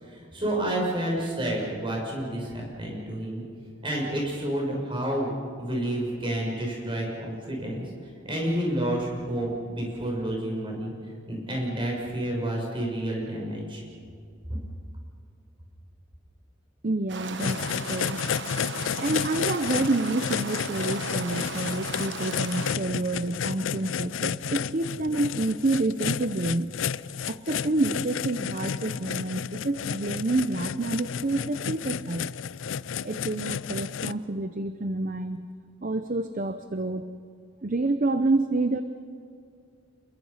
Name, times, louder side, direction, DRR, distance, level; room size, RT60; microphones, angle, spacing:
voice 1, 0.0-3.4 3.8-5.3 5.6-7.9 8.2-10.9 11.3-13.8, right 1 dB, 25° right, -2 dB, 6.6 m, -29 dB
voice 2, 16.8-18.2 19.0-26.7 27.3-32.3 33.0-35.4 35.8-37.1 37.6-38.8, right 2 dB, 45° right, 10 dB, 0.7 m, -28 dB
sound 1, 17.1-22.8, right 4 dB, 60° right, 1.1 m, -37 dB
sound 2, 17.4-34.1, left 7 dB, 80° left, 0.5 m, -32 dB
28.5 x 22.0 x 5.6 m, 2.3 s
head